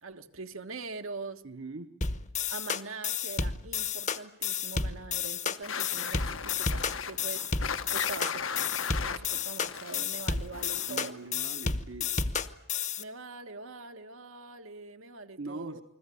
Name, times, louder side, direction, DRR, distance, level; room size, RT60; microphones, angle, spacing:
voice 1, 0.0-1.4 2.5-8.4 9.0-11.2 13.0-15.8, right 3 dB, 85° right, 6 dB, 1.5 m, -43 dB
voice 2, 1.4-1.9 10.9-12.1 15.4-15.8, right 3 dB, 65° right, 7 dB, 1.3 m, -41 dB
sound 1, 2.0-13.0, left 5 dB, 35° left, 1.0 m, -32 dB
sound 2, 5.6-11.3, left 6 dB, 75° left, 1.2 m, -37 dB
29.0 x 21.5 x 8.5 m, 0.77 s
head